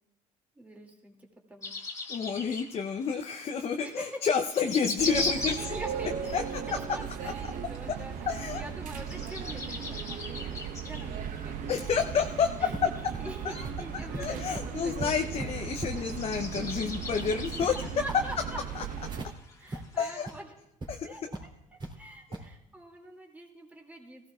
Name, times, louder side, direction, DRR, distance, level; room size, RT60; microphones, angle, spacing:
voice 1, 0.6-1.2 1.5-1.7 3.8-4.2 5.4-6.6 6.9-8.1 8.5-11.8 12.1-12.3 12.6-12.7 13.2-15.7 17.6-18.6 19.6-20.5 21.0-21.2 22.0-24.3, right 1 dB, 10° right, 0 dB, 2.5 m, -44 dB
sound 1, 1.6-20.4, left 2 dB, 20° left, 1.8 m, -40 dB
voice 2, 2.1-5.7 6.3-6.4 8.3-8.6 11.7-12.5 13.4-13.7 14.2-17.7 18.8-18.9 20.0-20.3 20.9-21.3 22.3-22.4, left 6 dB, 40° left, 5 dB, 0.7 m, -30 dB
sound 2, 5.0-19.3, right 7 dB, 60° right, 0.9 m, -37 dB
sound 3, 12.7-19.3 19.7-19.8 20.2-20.3 20.8-20.9 21.3-21.9 22.3-22.5, right 2 dB, 30° right, 3.0 m, -41 dB
17.0 x 15.0 x 2.4 m, 0.85 s
supercardioid pair, 90°, 15 cm